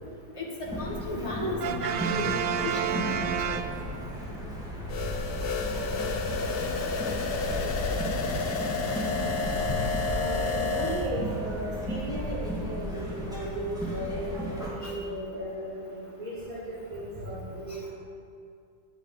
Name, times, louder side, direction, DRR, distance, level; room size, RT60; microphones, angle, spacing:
voice 1, 0.4-3.6 10.8-10.9 14.8-14.9, left 2 dB, 15° left, -3 dB, 1.9 m, -35 dB
sound 1, 0.7-14.7, equal, ahead, 2.3 m, -34 dB
Brass instrument, 1.6-4.3, right 9 dB, 75° right, 1.1 m, -30 dB
sound 2, 4.9-11.1, left 4 dB, 90° left, 0.5 m, -31 dB
voice 2, 10.0-17.9, right 1 dB, 20° right, -9 dB, 2.8 m, -36 dB
11.0 x 7.2 x 8.4 m, 2.3 s
omnidirectional pair, 2.1 m